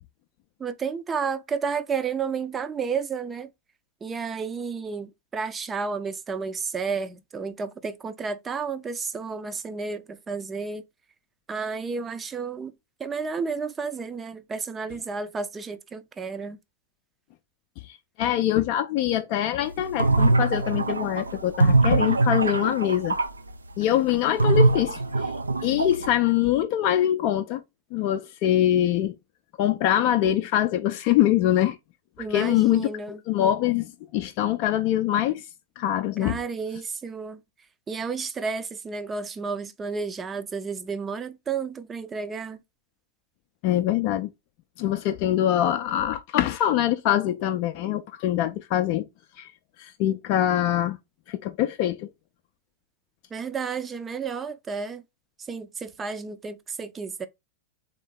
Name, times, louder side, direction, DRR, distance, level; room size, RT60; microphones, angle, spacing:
voice 1, 0.6-3.5 4.0-10.8 11.5-12.7 13.0-16.6 32.2-33.2 36.2-37.4 37.9-42.6 53.3-55.0 55.4-57.3, right 5 dB, 20° right, 0.5 m, -31 dB
voice 2, 17.8-23.2 23.8-25.3 25.6-27.6 27.9-29.2 29.6-31.8 32.3-32.9 33.3-35.4 35.8-36.4 43.6-44.3 44.8-49.1 49.4-49.5 49.8-51.0 51.3-52.1, left 12 dB, 45° left, 0.4 m, -24 dB
sound 1, 19.8-23.3 24.4-26.1, right 3 dB, 80° right, 0.4 m, -22 dB
3.6 x 3.5 x 3.8 m
figure-of-eight pair, 90°, 0 cm